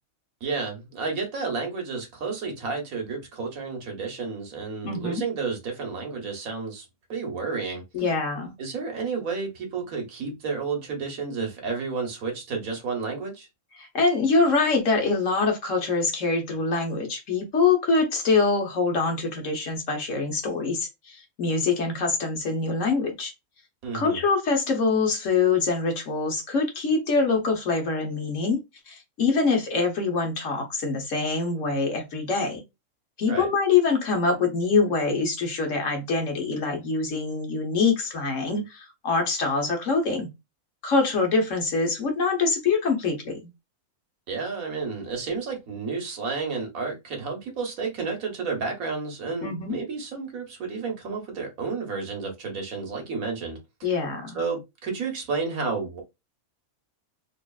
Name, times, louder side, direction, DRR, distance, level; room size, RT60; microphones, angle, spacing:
voice 1, 0.4-7.8 8.6-13.5 23.8-24.2 33.3-33.5 44.3-53.9 54.3-56.0, right 4 dB, 75° right, 1.6 m, -31 dB
voice 2, 4.8-5.2 7.9-8.6 13.8-23.3 23.9-28.6 28.9-32.6 33.2-40.3 40.8-43.5 49.4-49.8 53.8-54.4, left 4 dB, 65° left, 1.4 m, -24 dB
4.1 x 2.8 x 2.3 m
omnidirectional pair, 1.5 m